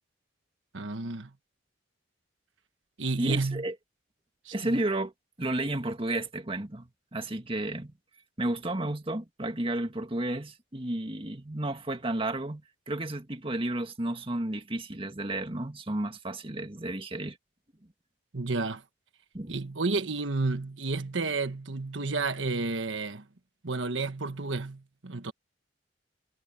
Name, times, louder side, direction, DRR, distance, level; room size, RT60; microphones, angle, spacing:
voice 1, 0.7-1.3 3.0-3.6 4.4-4.8 18.3-18.8 19.5-23.2 23.6-25.3, right 3 dB, 80° right, 1.4 m, -31 dB
voice 2, 3.2-3.7 4.5-5.1 5.4-7.9 8.4-17.4 19.3-19.6, right 1 dB, 30° right, 1.9 m, -32 dB
head